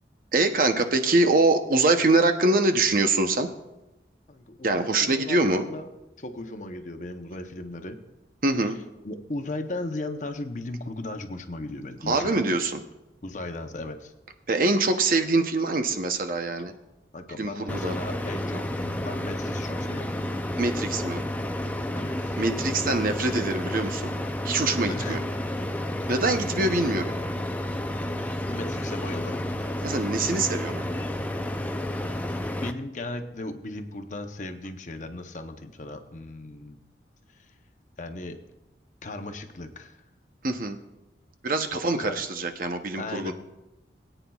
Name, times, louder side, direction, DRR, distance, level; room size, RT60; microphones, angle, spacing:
voice 1, 0.3-3.5 4.6-5.7 8.4-8.8 12.1-12.8 14.5-16.7 17.4-17.9 20.6-21.2 22.4-24.1 24.4-25.2 26.1-27.1 29.8-30.9 40.4-40.8 41.4-43.3, right 2 dB, 50° right, 6 dB, 0.7 m, -24 dB
voice 2, 4.3-5.9 6.2-8.0 8.6-8.7 9.0-12.4 13.2-14.1 17.1-20.2 21.9-22.4 22.7-23.5 24.7-25.2 26.3-26.6 28.4-29.5 32.4-36.8 37.3-37.5 38.0-38.4 39.0-40.0 41.7-42.2 43.0-43.3, left 2 dB, 45° left, 6 dB, 0.8 m, -37 dB
sound 1, 17.7-32.7, left 1 dB, 10° left, 0.4 m, -31 dB
21.0 x 9.0 x 2.3 m, 0.98 s
head